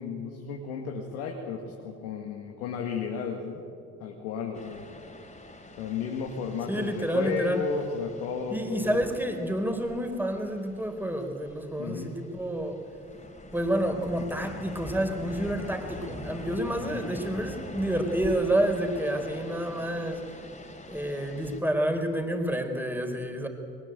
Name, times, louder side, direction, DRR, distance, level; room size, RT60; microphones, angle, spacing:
voice 1, 0.0-3.6 4.0-4.8 5.8-9.0 11.8-12.2 16.8-17.0, left 6 dB, 80° left, 1 dB, 2.2 m, -34 dB
sound 1, 4.5-21.6, left 2 dB, 20° left, 3.9 m, -44 dB
voice 2, 6.7-7.6 8.5-12.7 13.5-20.2 20.9-23.5, right 1 dB, 5° right, 5 dB, 4.5 m, -29 dB
22.0 x 19.5 x 9.2 m, 2.5 s
hypercardioid pair, 50°, 36 cm